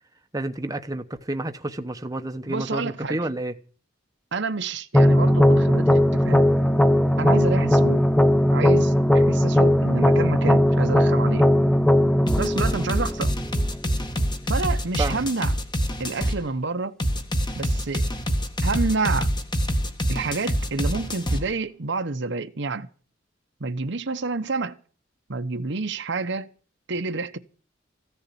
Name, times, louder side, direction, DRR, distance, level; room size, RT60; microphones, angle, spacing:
voice 1, 0.3-3.5 15.0-15.3, right 2 dB, 20° right, 1.0 m, -30 dB
voice 2, 2.5-3.2 4.3-6.5 7.2-8.1 8.5-11.5 12.4-13.3 14.5-15.6 16.0-17.0 17.5-18.1 18.6-19.3 20.1-22.9 23.6-24.8 25.3-26.5 26.9-27.4, right 3 dB, 65° right, 1.0 m, -28 dB
sound 1, 4.9-13.9, left 1 dB, 5° left, 0.7 m, -19 dB
sound 2, 12.3-16.4 17.0-21.4, equal, 25° left, 1.7 m, -25 dB
15.0 x 7.0 x 9.7 m
head